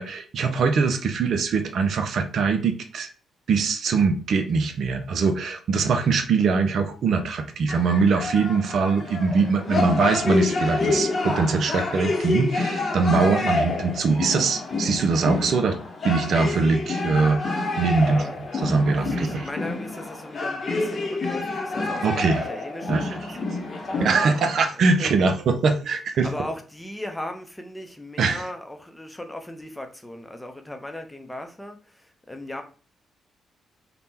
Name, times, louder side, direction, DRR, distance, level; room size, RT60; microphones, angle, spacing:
voice 1, 0.0-3.1 3.5-15.8 16.0-18.2 18.6-19.5 22.0-22.5 22.9-23.4 24.0-26.3 28.2-28.4, right 4 dB, 65° right, 0.4 m, -22 dB
sound 1, 7.7-24.6, left 3 dB, 50° left, 0.7 m, -28 dB
voice 2, 17.9-18.4 18.9-23.4 23.9-25.3 26.2-32.6, left 1 dB, 10° left, 0.6 m, -37 dB
3.3 x 2.1 x 2.7 m
hypercardioid pair, 50°, 0 cm